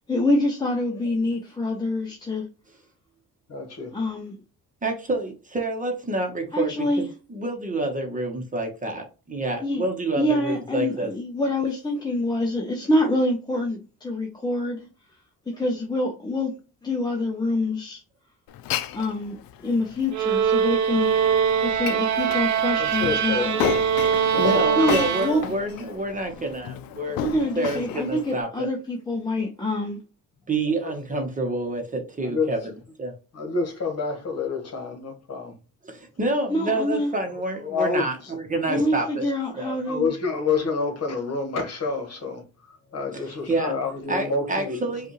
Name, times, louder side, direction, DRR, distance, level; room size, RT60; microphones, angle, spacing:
voice 1, 0.1-2.5 3.9-4.4 6.5-7.1 9.6-9.8 10.2-14.9 15.5-16.6 16.8-18.0 18.9-21.1 21.6-23.6 24.8-25.4 27.2-30.0 36.5-37.1 38.7-40.1, left 1 dB, 10° left, 0.6 m, -26 dB
voice 2, 3.5-4.0 22.8-23.5 24.3-24.9 30.6-30.9 32.2-32.5 33.3-35.5 37.6-38.3 38.7-38.9 39.2-39.3 39.8-44.9, left 4 dB, 45° left, 1.5 m, -28 dB
voice 3, 4.8-11.1 24.4-27.2 27.6-28.7 30.5-32.6 33.0-33.1 35.8-39.3 39.6-39.8 43.1-43.2 43.5-43.7 44.1-45.1, right 2 dB, 20° right, 1.0 m, -28 dB
Glass, 18.5-28.4, left 11 dB, 80° left, 0.5 m, -33 dB
sound 1, 20.1-25.8, right 8 dB, 55° right, 0.7 m, -23 dB
5.2 x 2.5 x 3.1 m
cardioid pair, 120°, 35 cm